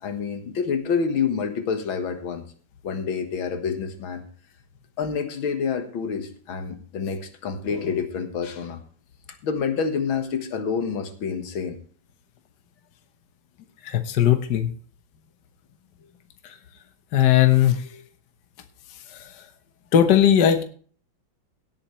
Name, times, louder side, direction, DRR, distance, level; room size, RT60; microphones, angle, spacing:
voice 1, 0.0-2.5 2.8-4.2 5.0-8.8 9.4-11.8 17.9-18.0, left 6 dB, 90° left, 8 dB, 2.3 m, -28 dB
voice 2, 13.8-14.7 17.1-17.8 19.9-20.6, left 10 dB, 60° left, 8 dB, 1.7 m, -18 dB
17.0 x 8.8 x 3.2 m, 0.44 s
omnidirectional pair, 2.1 m